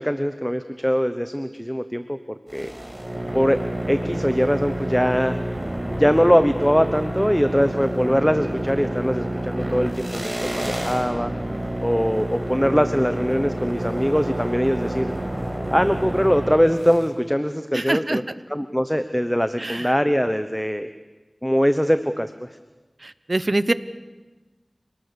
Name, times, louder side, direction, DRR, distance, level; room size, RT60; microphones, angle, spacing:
voice 1, 0.0-2.2 2.5-2.7 3.3-3.6 3.9-5.4 6.0-11.3 11.8-15.1 15.7-18.2 18.5-20.9 21.4-22.5, equal, 5° left, 10 dB, 1.0 m, -22 dB
sound 1, 2.5-17.1, right 1 dB, 30° right, 5.3 m, -29 dB
voice 2, 17.7-18.2 19.6-19.9 23.0-23.7, right 2 dB, 55° right, 14 dB, 0.9 m, -24 dB
27.0 x 19.0 x 7.0 m, 1.2 s
wide cardioid pair, 45°, 0 cm